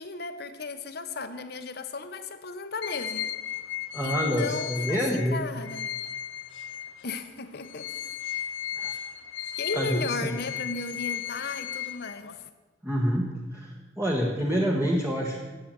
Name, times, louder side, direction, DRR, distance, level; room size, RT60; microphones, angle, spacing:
voice 1, 0.0-3.3 4.0-5.9 7.0-8.1 8.3-8.5 9.6-12.3, left 3 dB, 60° left, 9 dB, 1.0 m, -35 dB
sound 1, 2.8-7.2 7.6-12.5, left 10 dB, 85° left, 0.7 m, -35 dB
voice 2, 3.9-5.4 8.8-8.9 9.7-10.3 12.8-15.4, equal, 10° right, -1 dB, 1.4 m, -27 dB
14.5 x 8.7 x 7.6 m, 1.3 s
head